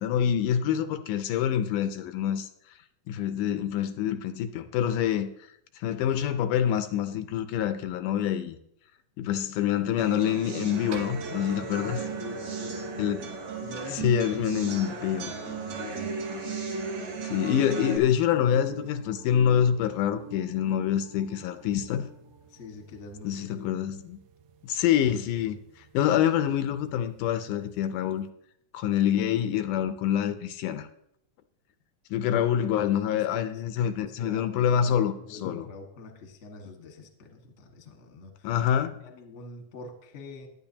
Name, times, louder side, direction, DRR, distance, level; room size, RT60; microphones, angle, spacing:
voice 1, 0.0-2.5 3.1-5.3 5.8-8.6 9.2-12.0 13.0-13.2 14.0-15.3 17.3-22.1 23.2-24.2 24.6-25.6 25.9-28.3 28.7-30.9 32.1-35.7 38.4-39.0, left 9 dB, 80° left, 10 dB, 2.1 m, -26 dB
sound 1, 10.0-18.0, right 5 dB, 60° right, 3.3 m, -35 dB
sound 2, 10.9-28.3, right 4 dB, 80° right, 2.3 m, -49 dB
voice 2, 11.6-13.1 13.6-16.1 17.4-18.4 22.5-23.8 33.1-38.5 39.0-40.5, left 3 dB, 35° left, 3 dB, 1.2 m, -46 dB
sound 3, 18.3-23.1, right 8 dB, 35° right, 1.2 m, -47 dB
17.5 x 11.5 x 2.9 m, 0.74 s
omnidirectional pair, 3.7 m